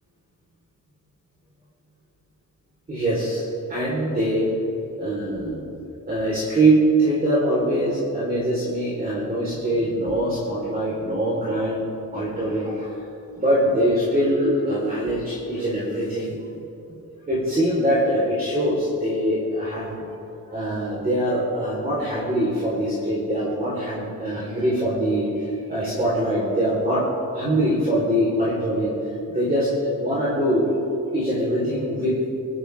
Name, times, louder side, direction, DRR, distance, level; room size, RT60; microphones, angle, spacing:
voice 1, 2.9-4.5 5.0-5.7 6.1-11.9 12.1-12.9 13.3-16.4 17.1-20.0 20.5-27.1 27.3-28.9 29.3-30.7 31.1-32.2, right 1 dB, 25° right, -7 dB, 4.0 m, -23 dB
27.0 x 13.5 x 3.5 m, 2.8 s
wide cardioid pair, 155°, 34 cm